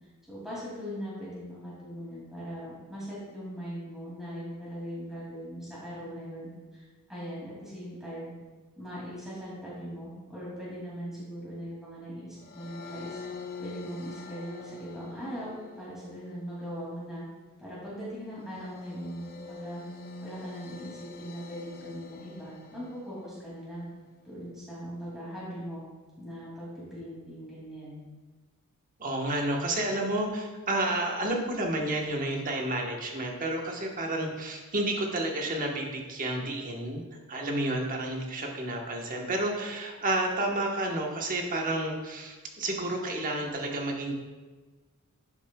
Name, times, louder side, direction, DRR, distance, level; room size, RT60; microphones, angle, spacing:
voice 1, 0.3-8.3 8.8-13.2 13.6-17.2 17.6-19.8 20.2-23.9 24.2-25.8 26.2-28.0, equal, ahead, -9 dB, 2.4 m, -40 dB
sound 1, 12.4-23.8, left 4 dB, 40° left, 0.6 m, -46 dB
voice 2, 29.0-37.0 37.3-44.1, right 1 dB, 40° right, 1 dB, 1.1 m, -30 dB
11.5 x 7.1 x 2.3 m, 1.3 s
head